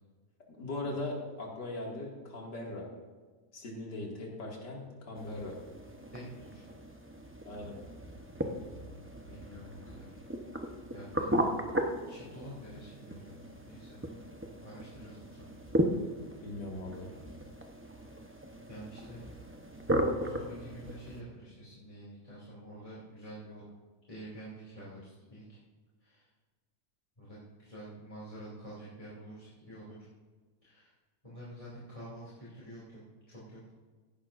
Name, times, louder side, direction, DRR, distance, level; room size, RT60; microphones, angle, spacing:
voice 1, 0.6-2.9 3.5-5.6 7.5-7.8 16.4-17.1, left 2 dB, 80° left, -2 dB, 2.9 m, -39 dB
sound 1, 5.1-21.2, right 1 dB, 10° right, 0.6 m, -36 dB
voice 2, 6.1-6.6 8.7-10.2 10.9-11.4 11.8-14.0 14.6-15.5 18.7-19.2 20.2-23.6 24.1-25.6 26.0-26.3 27.2-30.0 30.6-30.9 31.2-33.0 33.3-33.6, right 1 dB, 20° left, -9 dB, 2.9 m, -48 dB
15.5 x 11.0 x 2.6 m, 1.4 s
omnidirectional pair, 1.8 m